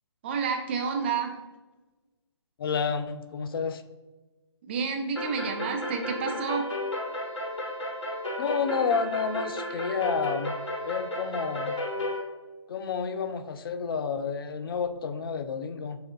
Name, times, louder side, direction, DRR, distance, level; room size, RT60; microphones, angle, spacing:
voice 1, 0.2-1.3 4.7-6.7, right 5 dB, 25° right, 3 dB, 0.3 m, -29 dB
voice 2, 2.6-3.8 8.4-10.6 10.8-11.8 12.7-16.0, left 6 dB, 50° left, 9 dB, 0.4 m, -30 dB
sound 1, 5.2-12.2, left 1 dB, 75° left, 1.0 m, -33 dB
6.3 x 2.4 x 2.5 m, 1.2 s
figure-of-eight pair, 140°, 15 cm